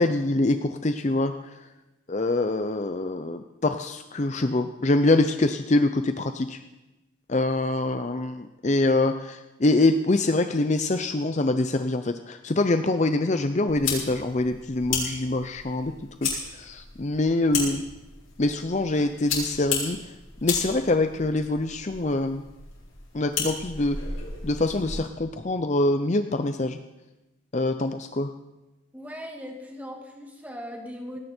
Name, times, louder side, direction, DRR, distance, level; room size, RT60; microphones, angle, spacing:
voice 1, 0.0-1.3 2.1-6.6 7.3-15.9 16.2-17.8 18.4-20.1 20.4-22.4 23.1-24.0 24.4-26.8 27.5-28.3, left 2 dB, 35° left, 9 dB, 0.6 m, -24 dB
sound 1, 13.7-25.1, left 5 dB, 75° left, 6.0 m, -34 dB
voice 2, 28.9-31.2, equal, 10° right, 1 dB, 2.2 m, -39 dB
18.5 x 17.0 x 4.5 m, 1.0 s
head